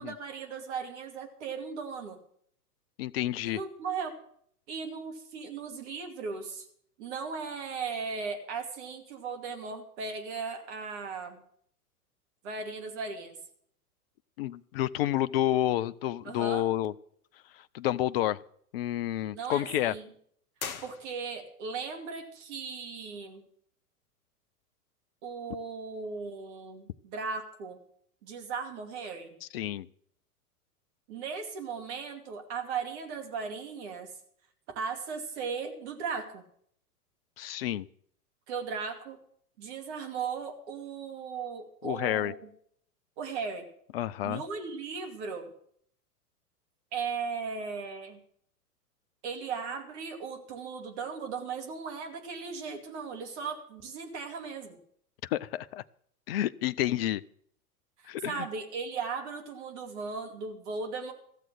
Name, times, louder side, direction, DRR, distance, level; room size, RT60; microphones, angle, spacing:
voice 1, 0.0-2.2 3.5-4.1 4.7-6.6 7.0-11.4 12.4-13.4 16.2-16.7 19.3-20.1 20.8-23.4 25.2-27.8 28.2-29.4 31.1-34.1 34.7-36.4 38.5-39.2 39.6-42.5 43.2-43.7 44.2-45.5 46.9-48.2 49.2-54.8 58.2-61.1, right 5 dB, 45° right, 4 dB, 2.6 m, -37 dB
voice 2, 3.0-3.6 14.4-16.9 17.7-18.4 18.7-19.9 29.5-29.9 37.4-37.9 41.8-42.3 43.9-44.4 55.2-55.8 56.3-57.2 58.1-58.5, left 13 dB, 40° left, 18 dB, 0.5 m, -29 dB
sound 1, 20.5-21.6, left 6 dB, 65° left, 1.3 m, -41 dB
15.0 x 7.6 x 7.8 m, 0.64 s
figure-of-eight pair, 100°, 46 cm